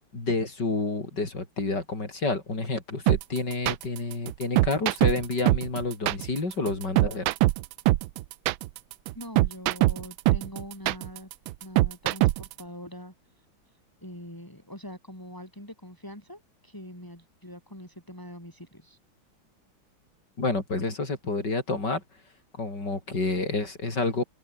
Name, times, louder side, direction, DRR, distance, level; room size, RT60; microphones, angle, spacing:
voice 1, 0.1-7.3 20.4-22.0 22.5-24.2, left 3 dB, 55° left, 5.7 m, -29 dB
sound 1, 3.1-12.6, right 17 dB, 80° right, 1.4 m, -23 dB
voice 2, 9.1-11.3 11.6-13.1 13.7-19.0, equal, 10° left, 7.3 m, -43 dB
omnidirectional pair, 2.2 m